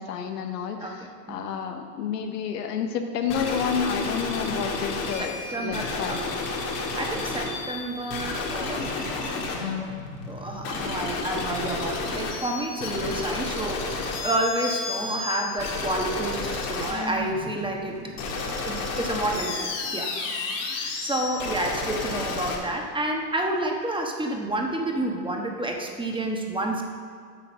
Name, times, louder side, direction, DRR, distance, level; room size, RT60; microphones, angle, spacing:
voice 1, 0.0-6.2 11.0-11.3, left 6 dB, 90° left, 5 dB, 1.0 m, -30 dB
sound 1, 3.3-22.6, left 3 dB, 75° left, 1.8 m, -31 dB
voice 2, 5.2-6.3 6.9-9.1 10.3-18.0 18.6-20.1 20.4-26.8, right 1 dB, 10° right, 1 dB, 1.2 m, -30 dB
8.2 x 5.9 x 6.1 m, 2.1 s
hypercardioid pair, 90°, 47 cm